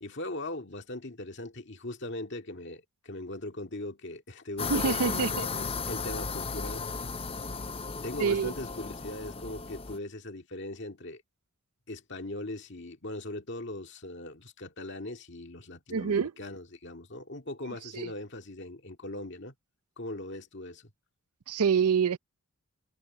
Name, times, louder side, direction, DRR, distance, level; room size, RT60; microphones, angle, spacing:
voice 1, 0.0-6.9 8.0-11.2 11.9-19.5 20.0-20.9, left 1 dB, 50° left, 2.1 m, -40 dB
sound 1, 4.6-10.0, left 4 dB, 25° left, 0.6 m, -35 dB
voice 2, 4.7-5.5 8.2-8.5 15.9-16.3 17.9-18.1 21.5-22.2, right 6 dB, 85° right, 0.6 m, -26 dB
head